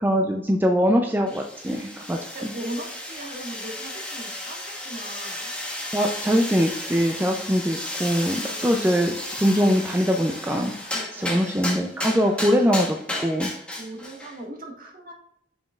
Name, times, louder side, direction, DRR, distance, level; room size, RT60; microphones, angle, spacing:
voice 1, 0.0-2.2 5.9-10.7 11.1-13.5, equal, 10° right, 2 dB, 0.4 m, -22 dB
sound 1, 1.3-14.4, left 1 dB, 5° left, 1.1 m, -34 dB
voice 2, 1.6-5.5 8.4-9.0 10.9-11.4 13.8-15.1, right 1 dB, 50° right, 0 dB, 1.6 m, -39 dB
6.4 x 6.2 x 2.4 m, 0.78 s
head